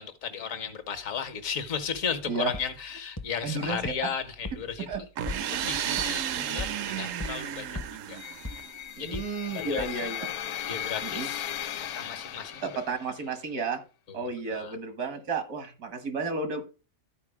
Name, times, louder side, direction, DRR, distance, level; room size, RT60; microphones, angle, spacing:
voice 1, 0.0-4.9 5.5-8.2 9.0-9.2 9.5-10.1 10.7-11.5 11.9-12.7 14.1-14.7, left 7 dB, 65° left, 10 dB, 1.6 m, -35 dB
sound 1, 2.5-2.6 3.2-3.3 3.8-3.9 4.4-4.5 4.9-5.4 6.0-6.1 6.6-6.7 7.2-7.3 7.8-7.9 8.4-8.5 9.1-9.2 9.8-9.9, left 2 dB, 20° left, 0.6 m, -34 dB
voice 2, 3.4-3.9 4.8-5.0 5.9-6.0 9.0-10.3 11.0-11.3 12.8-13.8 14.1-16.6, right 4 dB, 85° right, 9 dB, 1.9 m, -32 dB
sound 2, 5.2-8.9, right 9 dB, 70° right, 0.9 m, -33 dB
sound 3, 8.2-13.2, left 11 dB, 85° left, 1.2 m, -37 dB
12.5 x 4.7 x 4.8 m, 0.33 s
omnidirectional pair, 1.5 m